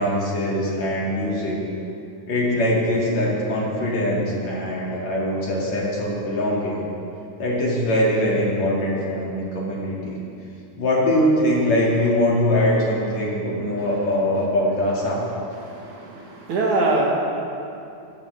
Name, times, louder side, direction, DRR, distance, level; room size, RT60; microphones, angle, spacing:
voice 1, 0.0-1.6 2.3-6.8 7.4-10.2 10.8-15.3, left 1 dB, 55° left, -5 dB, 3.5 m, -22 dB
voice 2, 15.6-17.0, right 3 dB, 65° right, -2 dB, 2.7 m, -24 dB
16.5 x 14.0 x 3.5 m, 2.7 s
omnidirectional pair, 4.0 m